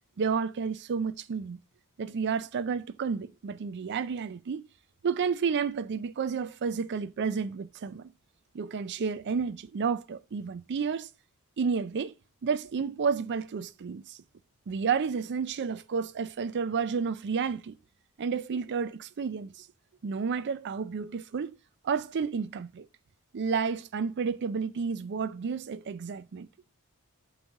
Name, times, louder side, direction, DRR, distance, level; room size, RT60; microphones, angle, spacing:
voice 1, 0.2-1.6 2.0-4.6 5.0-8.1 8.5-11.1 11.6-12.1 12.4-14.2 14.7-17.8 18.2-19.7 20.0-21.5 21.8-22.8 23.3-26.5, right 5 dB, 50° right, 0.4 m, -31 dB
8.0 x 3.2 x 6.4 m
head